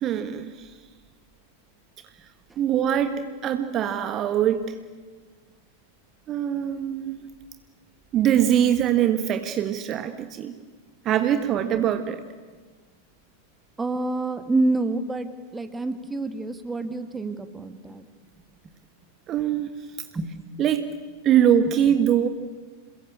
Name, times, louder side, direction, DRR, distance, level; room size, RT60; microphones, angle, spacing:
voice 1, 0.0-0.7 2.6-4.8 6.3-7.3 8.1-10.5 11.0-12.2 19.3-19.7 20.6-20.9 21.2-22.3, right 10 dB, 30° right, 9 dB, 1.5 m, -23 dB
voice 2, 13.8-18.1 20.1-20.5, right 2 dB, 10° right, 10 dB, 1.9 m, -27 dB
28.0 x 21.5 x 8.7 m, 1.4 s
figure-of-eight pair, 90°, 0 cm